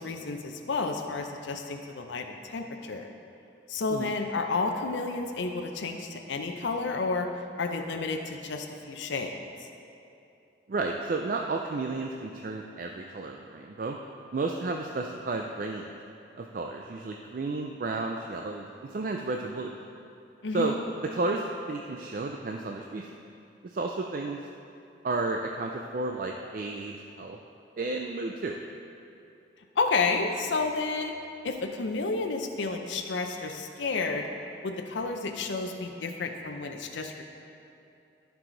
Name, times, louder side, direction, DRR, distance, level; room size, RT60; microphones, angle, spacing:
voice 1, 0.0-3.1 3.7-7.3 7.6-9.3 20.4-20.8 29.8-31.1 31.4-34.2 34.6-37.2, left 3 dB, 75° left, 4 dB, 0.5 m, -31 dB
voice 2, 10.7-14.0 14.3-15.9 16.4-19.7 20.5-20.7 21.1-23.1 23.6-24.4 25.0-27.4 27.8-28.6, right 3 dB, 45° right, 2 dB, 0.4 m, -32 dB
14.0 x 4.8 x 3.9 m, 2.8 s
head